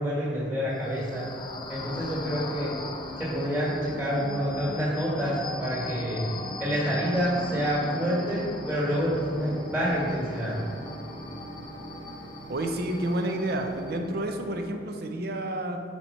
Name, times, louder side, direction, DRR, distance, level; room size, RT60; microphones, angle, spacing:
voice 1, 0.0-1.3 1.7-2.7 3.2-6.2 6.6-10.6, equal, 10° right, -6 dB, 1.6 m, -28 dB
sound 1, 0.7-14.1, left 3 dB, 25° left, 0.4 m, -41 dB
sound 2, 1.6-14.9, equal, 80° right, 0.9 m, -42 dB
voice 2, 12.5-15.8, right 1 dB, 60° right, 5 dB, 0.6 m, -30 dB
4.4 x 4.4 x 5.4 m, 2.2 s
head